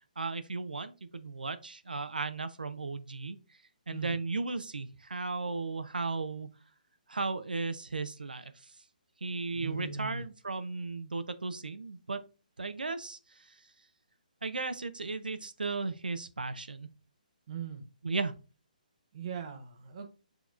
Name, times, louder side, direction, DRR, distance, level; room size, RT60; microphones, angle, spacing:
voice 1, 0.2-3.4 3.9-6.5 7.1-8.5 9.2-12.2 12.6-13.2 14.4-16.9 18.0-18.3, right 3 dB, 85° right, 10 dB, 0.5 m, -35 dB
voice 2, 9.5-10.2 17.5-17.8 19.1-20.1, right 6 dB, 45° right, 6 dB, 0.7 m, -39 dB
7.1 x 2.9 x 2.4 m, 0.33 s
figure-of-eight pair, 140°, 5 cm